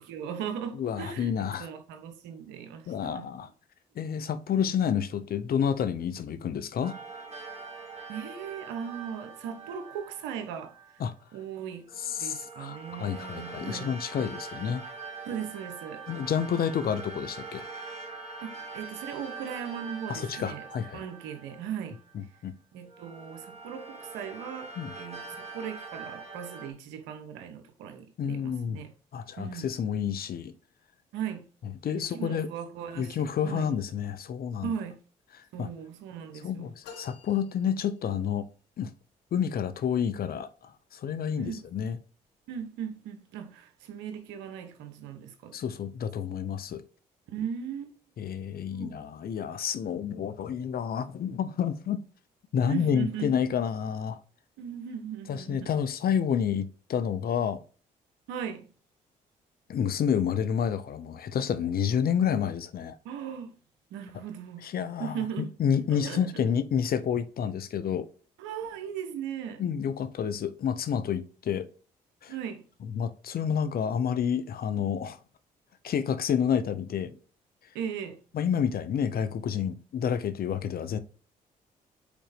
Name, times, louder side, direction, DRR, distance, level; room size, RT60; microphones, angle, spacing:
voice 1, 0.0-3.3 8.1-11.0 11.3-13.9 15.2-16.0 18.4-20.7 20.9-22.0 22.7-28.9 29.4-29.7 31.1-31.5 31.9-33.7 34.6-35.0 35.5-36.7 41.4-41.7 42.5-45.6 47.3-47.9 48.7-49.0 52.6-53.3 54.6-55.7 58.3-58.7 63.0-63.6 63.9-64.7 65.0-65.5 65.9-66.4 68.4-69.6 72.3-72.7 77.7-78.2, right 8 dB, 85° right, 1.0 m, -38 dB
voice 2, 0.8-1.7 2.9-3.5 4.0-7.0 11.0-11.1 12.0-14.8 16.1-17.7 20.1-21.0 22.1-22.6 24.8-24.9 28.2-28.8 29.1-30.5 31.8-32.5 33.0-34.7 35.6-35.7 36.4-38.5 38.8-38.9 39.3-42.0 45.5-46.8 48.2-52.0 52.5-54.2 55.3-57.6 59.7-63.0 64.6-68.1 69.6-71.7 72.2-72.3 72.9-75.2 75.8-77.2 78.3-81.0, left 8 dB, 60° left, 0.8 m, -29 dB
sound 1, 6.8-11.0 11.9-22.4 22.9-26.7, right 4 dB, 35° right, 2.3 m, -43 dB
sound 2, 36.8-38.5, left 5 dB, 80° left, 1.2 m, -50 dB
5.2 x 4.4 x 5.0 m
supercardioid pair, 55°, 18 cm